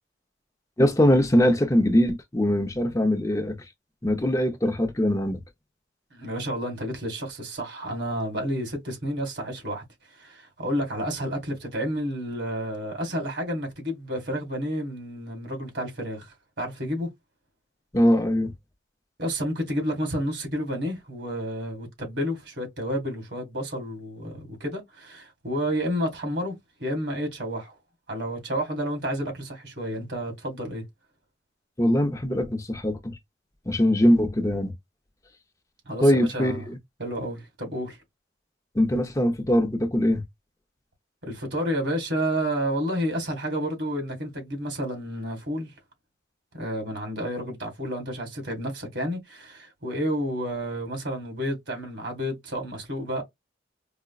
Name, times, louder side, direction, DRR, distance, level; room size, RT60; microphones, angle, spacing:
voice 1, 0.8-3.6 4.0-5.4 17.9-18.5 31.8-33.2 33.7-34.7 36.0-36.8 38.7-40.2, equal, 15° left, 0.6 m, -22 dB
voice 2, 6.1-9.8 10.2-17.1 19.2-26.5 26.8-27.8 28.1-30.8 35.9-36.6 37.0-38.0 41.2-45.7 46.5-53.2, equal, 70° right, 1.9 m, -30 dB
4.9 x 2.2 x 2.4 m
head